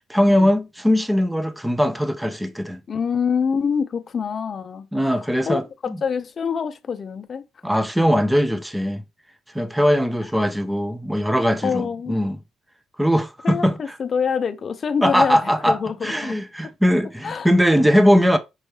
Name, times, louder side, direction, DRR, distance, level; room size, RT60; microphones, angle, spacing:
voice 1, 0.1-2.8 4.9-6.0 7.6-9.0 9.5-12.4 13.0-13.8 15.0-18.4, equal, 5° right, 0.6 m, -20 dB
voice 2, 2.9-7.5 11.6-12.2 13.4-16.4 17.2-17.5, left 6 dB, 40° left, 0.5 m, -26 dB
5.3 x 3.1 x 3.1 m
cardioid pair, 110°, 0 cm